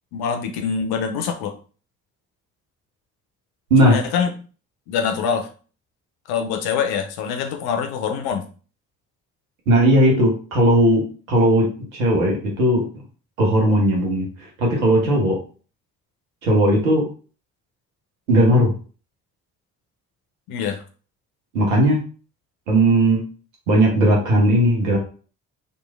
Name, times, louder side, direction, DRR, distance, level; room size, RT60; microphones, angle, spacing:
voice 1, 0.1-1.5 3.8-4.3 4.9-5.5 6.3-8.4 20.5-20.8, left 6 dB, 65° left, 6 dB, 0.6 m, -24 dB
voice 2, 9.7-11.7 11.9-12.8 13.4-14.3 14.6-15.4 16.4-17.0 18.3-18.7 21.5-22.0 22.7-23.2 23.7-25.0, right 1 dB, 85° right, -1 dB, 0.9 m, -17 dB
3.0 x 2.5 x 2.3 m, 0.39 s
hypercardioid pair, 45°, 40 cm